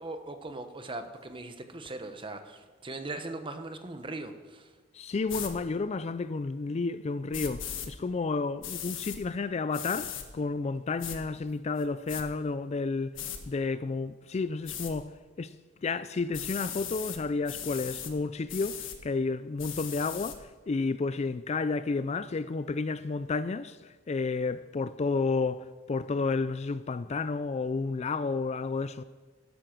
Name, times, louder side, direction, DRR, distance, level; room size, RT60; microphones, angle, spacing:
voice 1, 0.0-4.7, right 2 dB, 25° right, 1.0 m, -39 dB
voice 2, 4.9-15.5 15.8-29.0, left 4 dB, 35° left, 0.4 m, -31 dB
sound 1, 5.3-5.5 7.3-7.9 8.6-9.2 9.7-10.3 11.0-11.2 11.8-12.2 13.1-13.4 14.7-14.9 16.3-17.2 17.5-18.1 18.5-19.0 19.6-20.4, left 9 dB, 75° left, 1.4 m, -38 dB
12.5 x 11.5 x 6.0 m
head